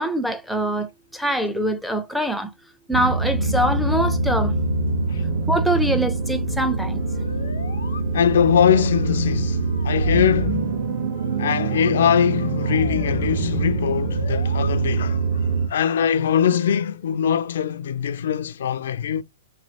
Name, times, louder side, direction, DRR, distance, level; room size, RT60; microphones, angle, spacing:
voice 1, 0.0-2.5 2.9-4.5 5.5-7.0, equal, ahead, 0.5 m, -24 dB
sound 1, 2.9-15.7, right 3 dB, 55° right, 1.2 m, -24 dB
sound 2, 7.0-8.0 8.4-9.3 9.6-10.6 11.1-11.9 12.4-13.4 13.9-14.7, left 5 dB, 90° left, 0.7 m, -39 dB
voice 2, 8.1-10.7 11.4-15.3 15.7-19.2, left 8 dB, 70° left, 0.4 m, -22 dB
3.1 x 2.7 x 2.8 m
hypercardioid pair, 135°, 0 cm